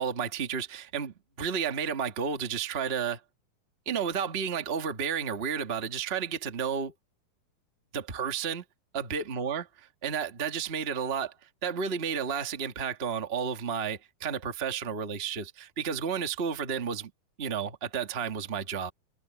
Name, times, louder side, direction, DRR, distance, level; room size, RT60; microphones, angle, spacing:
voice 1, 0.0-3.2 3.8-6.9 7.9-8.6 8.9-9.6 10.0-11.3 11.6-17.1 17.4-18.9, right 7 dB, 85° right, 0.5 m, -32 dB
omnidirectional pair, 4.4 m